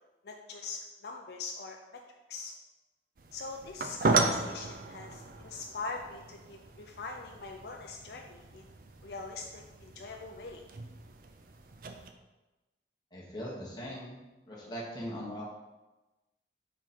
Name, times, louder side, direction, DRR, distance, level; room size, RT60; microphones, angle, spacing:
voice 1, 0.2-2.0 2.3-2.5 3.3-8.6 9.0-10.6, left 4 dB, 65° left, 2 dB, 0.5 m, -42 dB
sound 1, 3.2-12.1, right 3 dB, 50° right, 0.5 m, -36 dB
voice 2, 13.1-14.2 14.5-15.4, equal, 25° left, -5 dB, 1.4 m, -40 dB
5.6 x 4.5 x 4.3 m, 1.1 s
head